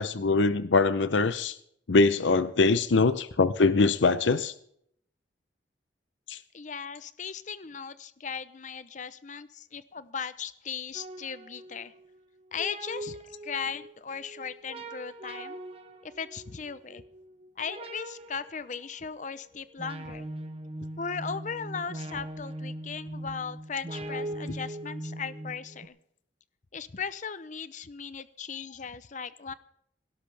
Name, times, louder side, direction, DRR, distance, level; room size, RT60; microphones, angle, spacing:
voice 1, 0.0-1.6 1.9-4.5 6.3-6.4, left 3 dB, 85° left, 14 dB, 0.7 m, -23 dB
voice 2, 6.5-11.9 12.5-13.2 13.4-15.6 16.0-17.0 17.6-20.3 21.0-25.9 26.7-29.5, left 6 dB, 40° left, 15 dB, 0.7 m, -37 dB
sound 1, 10.9-25.9, right 1 dB, 30° right, 1.1 m, -41 dB
17.5 x 17.0 x 3.4 m, 0.69 s
head